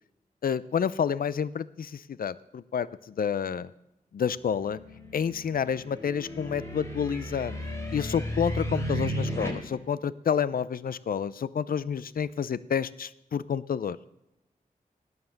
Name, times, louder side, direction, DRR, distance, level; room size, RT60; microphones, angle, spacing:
voice 1, 0.4-3.7 4.1-4.8 5.1-7.6 7.9-14.0, left 7 dB, 80° left, 17 dB, 0.5 m, -29 dB
sound 1, 4.5-9.5, equal, 20° left, 4.7 m, -34 dB
19.0 x 9.5 x 6.5 m, 0.91 s
wide cardioid pair, 110°, 15 cm